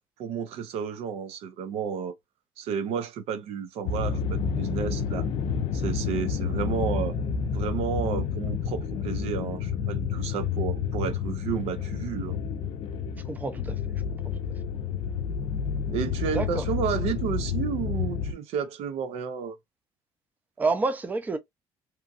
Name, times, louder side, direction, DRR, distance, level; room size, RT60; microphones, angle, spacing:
voice 1, 0.2-2.1 2.6-5.3 5.7-7.2 7.5-12.4 15.9-19.6, right 7 dB, 85° right, 0.5 m, -32 dB
sound 1, 3.8-18.3, left 6 dB, 65° left, 0.4 m, -29 dB
voice 2, 13.3-13.9 16.3-16.6 20.6-21.4, right 3 dB, 15° right, 0.5 m, -28 dB
2.9 x 2.3 x 2.4 m
cardioid pair, 135°, 10 cm